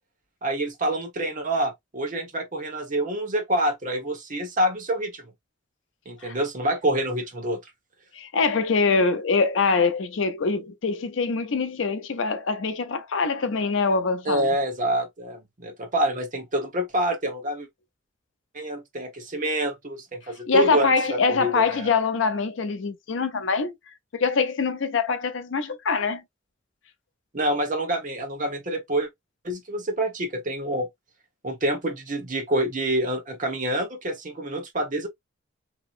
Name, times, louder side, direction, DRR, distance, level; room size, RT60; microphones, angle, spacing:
voice 1, 0.4-5.3 6.1-7.6 14.2-17.7 18.5-21.9 27.3-29.1 29.4-30.9 31.4-35.1, right 1 dB, 45° right, 1.0 m, -27 dB
voice 2, 8.1-14.5 20.5-23.7 24.1-26.2, left 4 dB, 75° left, 0.5 m, -24 dB
2.9 x 2.8 x 2.4 m
head